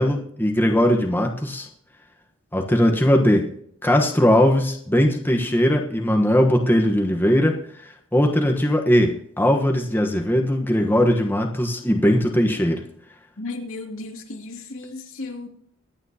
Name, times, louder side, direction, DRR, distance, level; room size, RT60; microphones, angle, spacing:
voice 1, 0.0-1.7 2.5-3.5 3.8-7.6 8.1-12.8, equal, 10° left, 1.1 m, -19 dB
voice 2, 13.4-15.5, left 2 dB, 80° left, 2.5 m, -34 dB
23.5 x 9.0 x 2.9 m
head